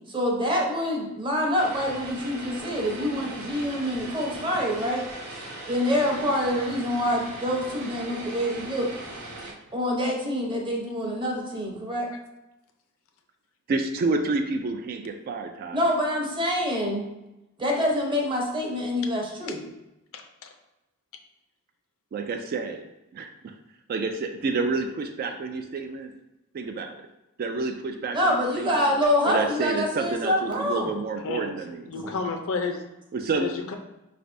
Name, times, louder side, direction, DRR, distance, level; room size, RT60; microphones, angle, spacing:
voice 1, 0.1-5.1 5.7-8.9 9.7-12.1 15.7-17.1 17.6-19.6 28.1-30.9, left 1 dB, 20° right, 0 dB, 0.8 m, -26 dB
Vehicle, 1.6-9.5, right 2 dB, 75° right, 0.8 m, -39 dB
voice 2, 13.7-15.8 22.1-22.9 23.1-23.6 23.9-26.1 26.5-27.0 27.4-28.9 29.2-31.8 33.1-33.7, right 3 dB, 45° right, 5 dB, 0.3 m, -29 dB
voice 3, 20.1-20.5 31.2-31.6 31.9-32.8 33.4-33.8, left 4 dB, 65° left, 5 dB, 0.5 m, -31 dB
4.9 x 3.3 x 2.6 m, 0.95 s
head